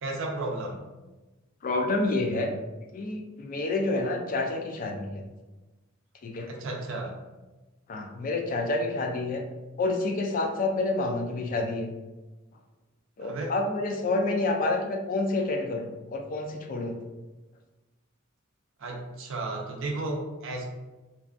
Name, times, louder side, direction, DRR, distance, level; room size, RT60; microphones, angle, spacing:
voice 1, 0.0-0.8 6.5-7.1 13.2-13.5 18.8-20.6, right 2 dB, 65° right, 0 dB, 0.5 m, -33 dB
voice 2, 1.6-2.5 2.9-5.2 6.2-6.5 7.9-9.4 9.8-11.9 13.2-17.0, left 2 dB, 40° left, 3 dB, 0.3 m, -28 dB
2.5 x 2.3 x 2.4 m, 1.1 s
head